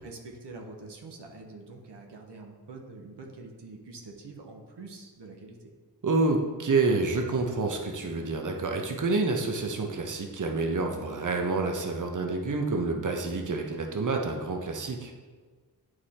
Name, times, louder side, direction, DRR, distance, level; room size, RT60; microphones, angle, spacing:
voice 1, 0.0-5.7, right 3 dB, 80° right, 2 dB, 1.1 m, -45 dB
voice 2, 6.0-15.1, right 3 dB, 50° right, 2 dB, 1.0 m, -28 dB
8.5 x 4.8 x 4.3 m, 1.5 s
cardioid pair, 60°, 40 cm